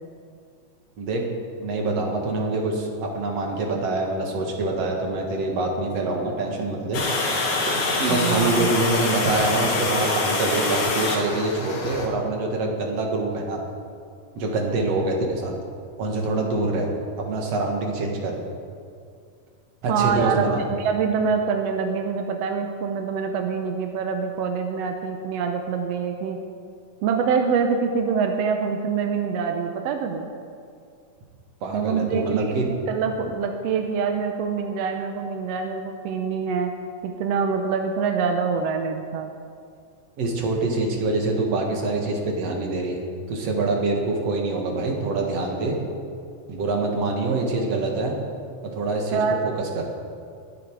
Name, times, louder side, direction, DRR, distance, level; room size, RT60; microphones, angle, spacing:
voice 1, 1.6-7.0 8.0-13.6 14.4-15.6 16.0-16.9 17.2-18.4 19.8-20.6 31.6-32.7 40.2-45.8 46.5-48.2 48.7-49.2 49.6-49.9, right 2 dB, 55° right, 1 dB, 2.7 m, -25 dB
Water, 6.9-12.1, left 3 dB, 65° left, 3.1 m, -25 dB
voice 2, 8.1-8.7 19.9-26.4 27.0-30.3 31.7-36.7 37.0-39.3 49.1-49.4, right 6 dB, 70° right, 4 dB, 1.6 m, -25 dB
21.5 x 9.3 x 4.8 m, 2.3 s
omnidirectional pair, 3.7 m